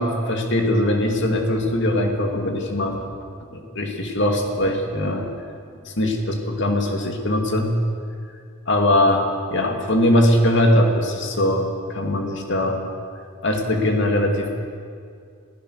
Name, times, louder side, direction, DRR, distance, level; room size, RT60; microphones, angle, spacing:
voice 1, 0.0-3.0 3.5-5.3 5.9-7.7 8.7-12.8 13.4-14.6, left 1 dB, 60° left, 3 dB, 2.5 m, -21 dB
25.0 x 16.0 x 6.6 m, 2.3 s
head